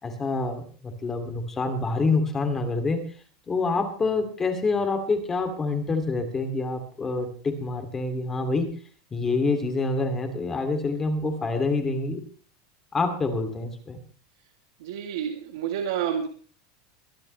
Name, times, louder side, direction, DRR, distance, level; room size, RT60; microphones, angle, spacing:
voice 1, 0.0-3.0 3.5-8.7 9.1-12.2 12.9-14.0, left 3 dB, 15° left, 5 dB, 2.7 m, -27 dB
voice 2, 14.8-16.3, right 8 dB, 75° right, 2 dB, 2.6 m, -29 dB
23.0 x 12.0 x 3.3 m, 0.41 s
supercardioid pair, 165°, 3 cm